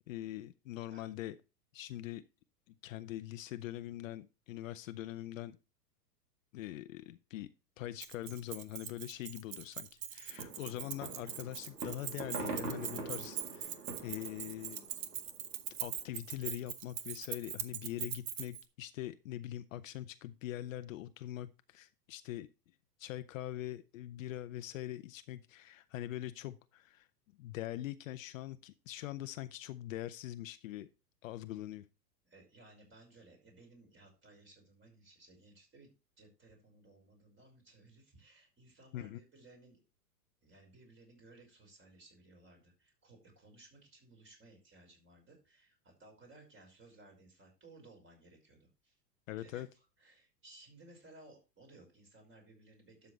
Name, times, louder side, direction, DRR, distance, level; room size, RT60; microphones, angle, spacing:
voice 1, 0.1-1.4 1.7-2.2 2.8-5.6 6.5-7.5 7.8-14.8 15.8-22.5 23.0-27.1 27.4-30.9 31.2-31.9 38.9-39.2 49.3-49.7, left 14 dB, 55° left, 12 dB, 0.7 m, -43 dB
Keys jangling, 8.0-18.6, right 10 dB, 55° right, 1.2 m, -42 dB
sound 1, 10.3-15.6 16.0-16.1 16.3-16.4, right 3 dB, 75° right, 3.0 m, -44 dB
voice 2, 32.2-35.9 36.2-39.8 40.4-49.0 49.4-53.1, right 2 dB, 25° right, 2 dB, 5.4 m, -60 dB
12.0 x 6.9 x 3.2 m, 0.30 s
hypercardioid pair, 105°, 49 cm